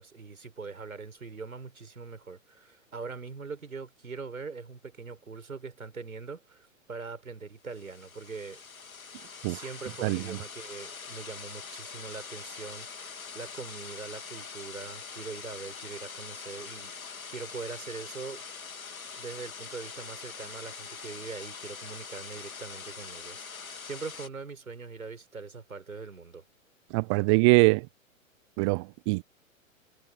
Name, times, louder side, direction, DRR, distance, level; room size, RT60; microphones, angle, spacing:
voice 1, 0.0-8.6 9.5-16.9 17.3-18.4 19.2-26.4, right 4 dB, 80° right, 6.1 m, -42 dB
sound 1, 7.7-24.3, left 5 dB, 80° left, 2.8 m, -43 dB
voice 2, 10.0-10.4 26.9-27.9 28.6-29.2, right 29 dB, 20° right, 0.5 m, -23 dB
figure-of-eight pair, 110°, 41 cm